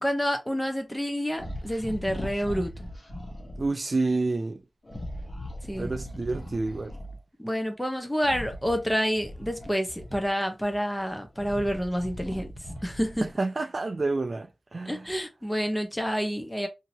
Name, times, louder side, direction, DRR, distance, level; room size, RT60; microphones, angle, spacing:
voice 1, 0.0-2.9 5.7-5.9 7.4-12.5 12.8-13.3 14.8-16.7, equal, 10° left, 0.9 m, -28 dB
sound 1, 1.4-3.7 4.8-7.2 8.2-10.5 11.0-13.4, equal, 40° left, 1.1 m, -39 dB
voice 2, 3.6-4.6 5.8-7.0 13.2-15.1, right 3 dB, 50° right, 0.4 m, -29 dB
2.8 x 2.8 x 2.8 m
cardioid pair, 55°, 0 cm